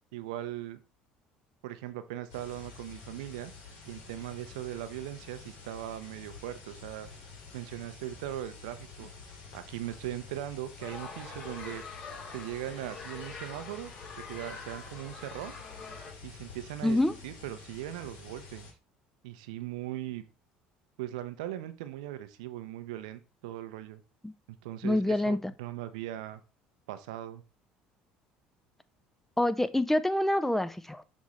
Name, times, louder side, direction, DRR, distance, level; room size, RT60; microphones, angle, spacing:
voice 1, 0.1-0.8 1.6-3.5 3.9-7.1 7.5-11.8 12.3-13.9 14.3-15.6 16.2-18.7 19.2-20.2 21.0-24.0 24.6-26.4 26.9-27.4, right 13 dB, 85° right, 0.6 m, -39 dB
sound 1, 2.3-18.7, left 5 dB, 80° left, 2.3 m, -49 dB
sound 2, 10.8-16.1, left 4 dB, 45° left, 3.0 m, -45 dB
voice 2, 16.8-17.2 24.2-24.3 24.8-25.5 29.4-31.0, left 1 dB, 5° left, 0.5 m, -26 dB
6.2 x 3.6 x 4.2 m
supercardioid pair, 80°, 4 cm